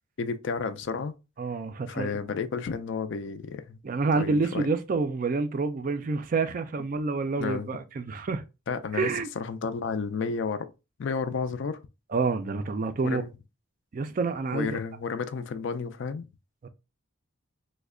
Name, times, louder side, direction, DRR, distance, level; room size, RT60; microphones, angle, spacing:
voice 1, 0.2-1.1 1.9-3.8 4.2-4.7 7.4-7.7 8.7-9.1 9.4-10.7 11.0-11.8 13.0-13.3 14.5-16.3, left 5 dB, 55° left, 0.3 m, -31 dB
voice 2, 1.4-2.2 3.8-8.4 8.9-9.3 12.1-13.2 13.9-14.8 16.6-16.7, right 4 dB, 40° right, 0.3 m, -28 dB
3.1 x 2.1 x 3.6 m
head